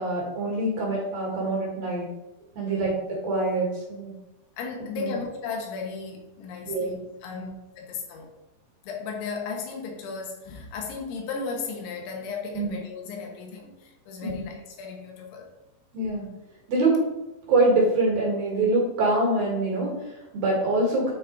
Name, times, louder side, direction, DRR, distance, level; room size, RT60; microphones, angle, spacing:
voice 1, 0.0-2.1 2.5-4.2 5.0-5.1 6.7-6.9 7.3-7.5 12.5-12.7 14.2-14.3 15.9-16.3 16.7-17.0 17.5-21.1, right 2 dB, 55° right, -3 dB, 3.1 m, -25 dB
voice 2, 4.6-8.3 8.9-15.5, left 5 dB, 75° left, 1 dB, 3.3 m, -35 dB
9.0 x 4.2 x 4.4 m, 0.98 s
omnidirectional pair, 5.6 m